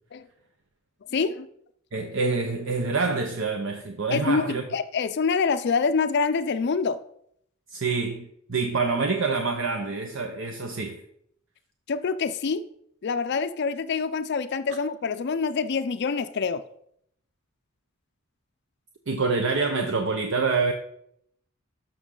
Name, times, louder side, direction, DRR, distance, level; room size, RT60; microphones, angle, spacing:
voice 1, 1.1-1.5 4.1-7.0 11.9-12.7 13.0-16.6, left 5 dB, 55° left, 0.4 m, -26 dB
voice 2, 1.9-4.6 7.7-11.0 19.1-20.7, right 4 dB, 65° right, 0.8 m, -26 dB
12.5 x 6.2 x 3.8 m
head